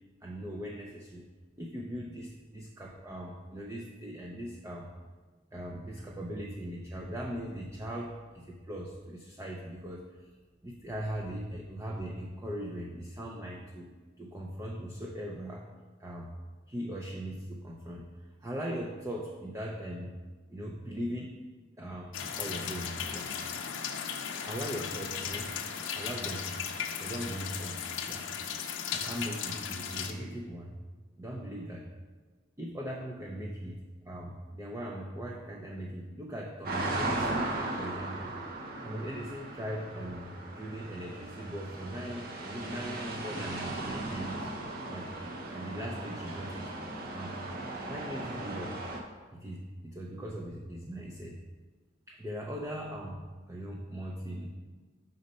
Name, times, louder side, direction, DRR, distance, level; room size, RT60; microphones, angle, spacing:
voice 1, 0.2-1.2 1.6-4.9 5.5-10.3 10.6-13.9 14.2-15.7 16.0-16.3 16.7-18.1 18.4-20.2 20.5-21.3 21.8-22.1 22.4-23.3 24.4-25.6 25.9-26.5 27.0-27.8 28.1-28.3 28.9-30.8 31.2-31.9 32.6-33.8 34.0-37.4 37.8-38.3 38.8-44.5 44.9-45.1 45.5-46.7 47.1-47.4 47.9-48.8 49.3-51.4 52.1-53.2 53.5-54.5, equal, 15° right, -2 dB, 0.4 m, -39 dB
sound 1, 22.1-30.1, left 7 dB, 85° left, 0.5 m, -36 dB
sound 2, 36.6-49.0, right 2 dB, 50° right, 0.7 m, -37 dB
5.2 x 4.0 x 5.2 m, 1.3 s
head